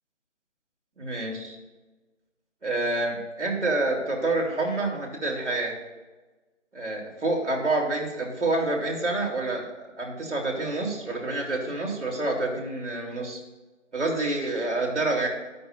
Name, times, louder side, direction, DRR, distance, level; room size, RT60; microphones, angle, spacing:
voice 1, 1.0-1.6 2.6-5.7 6.7-13.4 13.9-15.3, right 2 dB, 70° right, -1 dB, 3.4 m, -28 dB
13.0 x 10.5 x 2.6 m, 1.2 s
figure-of-eight pair, 150°, 37 cm